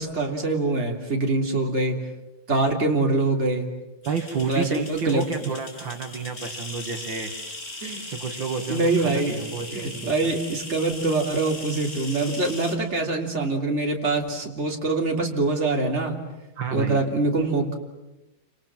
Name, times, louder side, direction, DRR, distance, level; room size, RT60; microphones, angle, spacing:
voice 1, 0.0-2.0 2.5-3.7 4.5-5.2 7.8-8.1 8.7-9.4 9.7-16.2 16.7-17.7, right 2 dB, 30° right, 2 dB, 3.4 m, -24 dB
sound 1, 4.0-12.8, left 2 dB, 35° left, 3.9 m, -39 dB
voice 2, 4.0-7.3 8.1-10.3 16.6-17.0, right 5 dB, 65° right, 4 dB, 2.5 m, -30 dB
29.5 x 27.0 x 7.6 m, 0.99 s
omnidirectional pair, 2.3 m